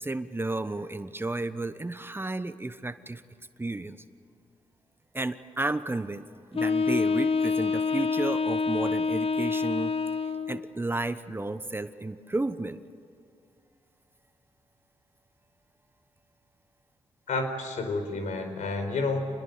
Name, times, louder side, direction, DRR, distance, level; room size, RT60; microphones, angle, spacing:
voice 1, 0.0-3.2 3.6-4.0 5.1-6.3 6.5-10.0 10.5-12.8, right 2 dB, 15° right, 11 dB, 1.1 m, -32 dB
Wind instrument woodwind instrument, 6.5-10.7, left 4 dB, 50° left, 1.2 m, -27 dB
voice 2, 17.3-19.2, left 3 dB, 75° left, 6 dB, 4.7 m, -30 dB
27.0 x 20.5 x 8.1 m, 2.4 s
cardioid pair, 60°, 13 cm